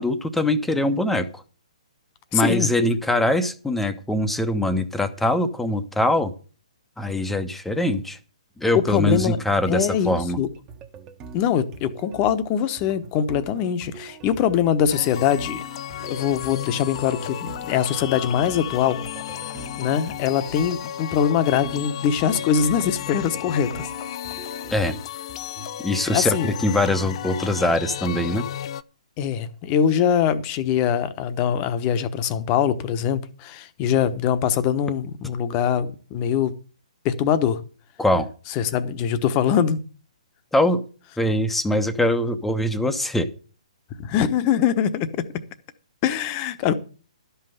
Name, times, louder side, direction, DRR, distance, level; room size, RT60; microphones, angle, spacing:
voice 1, 0.0-1.4 2.3-6.3 7.0-8.2 8.6-10.4 24.7-25.0 25.8-28.5 38.0-38.3 40.5-40.8 41.2-43.3, left 1 dB, 5° left, 0.9 m, -22 dB
voice 2, 2.3-2.7 8.7-9.4 9.7-10.5 11.3-15.6 16.0-19.0 19.8-23.9 26.1-26.5 29.2-36.5 37.0-37.6 38.6-39.8 44.0-45.2 46.0-46.7, left 8 dB, 30° left, 1.1 m, -22 dB
sound 1, 9.1-25.8, right 4 dB, 20° right, 1.2 m, -44 dB
sound 2, 14.9-28.8, left 11 dB, 45° left, 0.5 m, -33 dB
12.0 x 5.7 x 7.8 m
figure-of-eight pair, 130°, 4 cm